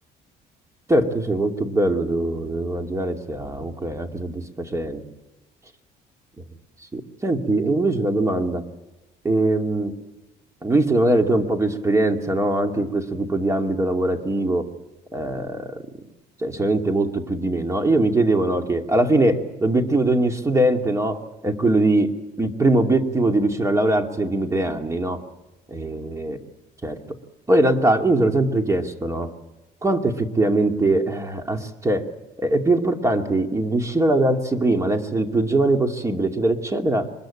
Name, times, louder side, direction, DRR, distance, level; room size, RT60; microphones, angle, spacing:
voice 1, 0.9-5.0 6.9-8.7 9.2-10.0 10.6-14.7 15.1-15.8 16.4-25.2 25.7-26.4 26.8-27.0 27.5-29.3 29.8-32.1 32.4-37.1, right 2 dB, 20° right, 5 dB, 2.4 m, -21 dB
24.5 x 21.0 x 8.8 m, 0.99 s
cardioid pair, 110°, 17 cm